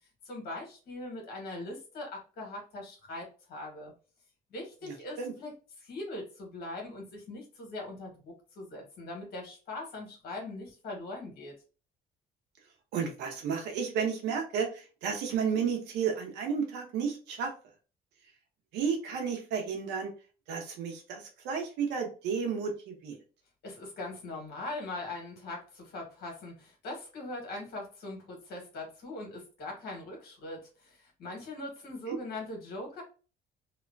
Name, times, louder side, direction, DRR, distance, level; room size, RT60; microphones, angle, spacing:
voice 1, 0.2-3.9 4.5-11.5 23.6-33.0, left 2 dB, 65° left, 1 dB, 1.4 m, -41 dB
voice 2, 4.8-5.3 12.9-17.5 18.7-20.1 20.5-23.2 32.1-32.2, right 6 dB, 85° right, 2 dB, 0.8 m, -32 dB
2.9 x 2.1 x 2.5 m, 0.36 s
cardioid pair, 110°, 17 cm